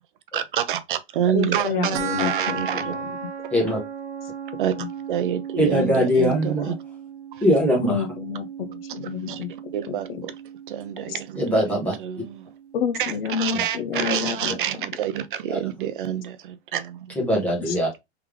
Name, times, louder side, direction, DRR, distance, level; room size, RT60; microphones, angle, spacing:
voice 1, 0.3-2.9 4.6-4.7 5.1-6.7 7.3-7.4 9.3-9.4 9.7-10.3 10.7-11.6 12.0-12.5 13.0-17.1, right 10 dB, 50° right, 0.5 m, -27 dB
voice 2, 1.3-3.2 4.8-4.9 7.9-9.5 9.9-10.3 11.1-11.2 12.7-14.6 17.7-17.8, left 8 dB, 60° left, 0.6 m, -29 dB
sound 1, 1.9-12.9, right 7 dB, 85° right, 0.8 m, -35 dB
voice 3, 5.6-6.7 7.4-8.0 11.4-12.0 13.5-13.6 14.1-14.2 15.5-15.6 17.2-17.9, equal, 5° left, 0.8 m, -21 dB
3.4 x 3.2 x 3.5 m
supercardioid pair, 175°, 34 cm